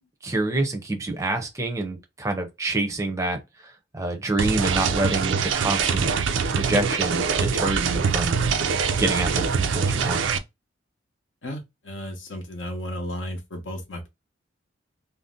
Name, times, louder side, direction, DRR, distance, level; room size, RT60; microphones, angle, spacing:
voice 1, 0.2-3.4 3.9-6.1 6.6-8.4 9.0-10.2, right 2 dB, 15° right, 0.5 m, -27 dB
sound 1, 4.4-10.4, right 5 dB, 75° right, 0.4 m, -24 dB
voice 2, 11.4-14.1, left 1 dB, 75° left, 0.7 m, -34 dB
2.5 x 2.0 x 3.6 m
head